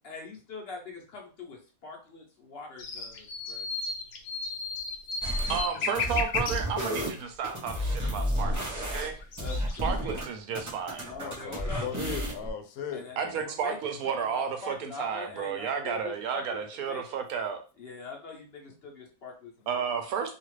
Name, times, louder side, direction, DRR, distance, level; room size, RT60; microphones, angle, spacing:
voice 1, 0.0-3.7 9.4-10.2 11.0-11.9 12.9-13.2 13.4-17.0 17.8-19.8, left 3 dB, 50° left, 0.9 m, -43 dB
sound 1, 2.8-6.6 8.3-8.4 8.8-9.9, left 4 dB, 70° left, 0.5 m, -34 dB
sound 2, 5.2-5.6 5.9-10.2 10.5-12.5, equal, 20° right, 0.6 m, -32 dB
voice 2, 5.5-9.2 9.8-11.1 13.2-17.6 19.7-20.3, right 7 dB, 90° right, 1.1 m, -32 dB
voice 3, 11.1-13.1, left 7 dB, 90° left, 1.0 m, -38 dB
2.7 x 2.4 x 3.1 m
omnidirectional pair, 1.5 m